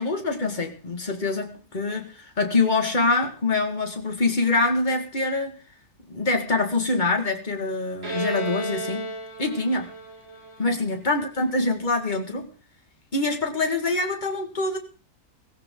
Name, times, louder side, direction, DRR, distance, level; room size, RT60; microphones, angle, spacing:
voice 1, 0.0-5.6 6.1-9.1 9.4-9.9 10.6-12.5 13.1-14.8, left 3 dB, 30° left, 5 dB, 2.0 m, -25 dB
Bowed string instrument, 8.0-11.6, right 1 dB, 20° right, 6.0 m, -33 dB
17.0 x 16.0 x 3.8 m, 0.37 s
omnidirectional pair, 1.7 m